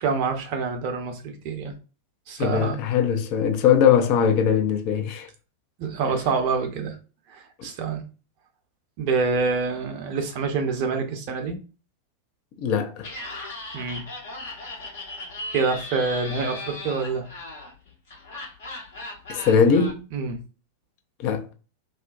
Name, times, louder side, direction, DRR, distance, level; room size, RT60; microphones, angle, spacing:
voice 1, 0.0-1.7 2.3-2.8 5.8-7.0 7.3-8.0 9.0-11.6 13.7-14.0 15.5-17.3 20.1-20.4, right 4 dB, 45° right, 0.6 m, -26 dB
voice 2, 2.4-5.3 12.6-13.1 19.3-20.0 21.2-21.5, left 7 dB, 40° left, 0.5 m, -21 dB
Laughter, 13.0-19.9, left 2 dB, 60° left, 1.1 m, -37 dB
2.5 x 2.1 x 2.4 m
figure-of-eight pair, 90°, 0 cm